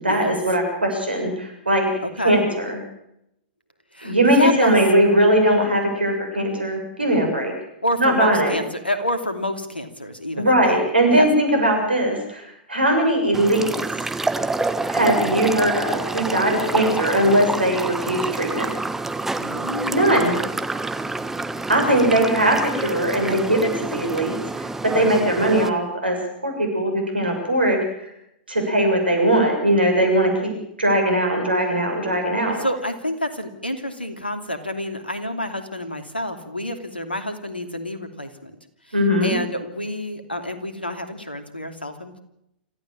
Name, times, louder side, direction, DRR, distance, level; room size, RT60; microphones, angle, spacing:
voice 1, 0.0-1.9 2.2-2.8 4.0-7.5 8.0-8.5 10.4-13.8 14.9-18.7 19.9-20.3 21.7-26.2 26.4-28.1 28.5-30.5 30.8-32.6 38.9-39.3, right 1 dB, 80° right, 3 dB, 7.1 m, -20 dB
voice 2, 2.0-2.4 3.9-4.8 7.8-10.8 11.1-11.3 19.4-20.1 21.9-22.0 32.6-38.5 38.9-39.0 39.2-42.2, left 1 dB, 85° left, 8 dB, 2.8 m, -28 dB
sound 1, 13.3-25.7, right 2 dB, 5° right, 1.3 m, -27 dB
26.0 x 15.0 x 7.5 m, 0.80 s
figure-of-eight pair, 100°, 5 cm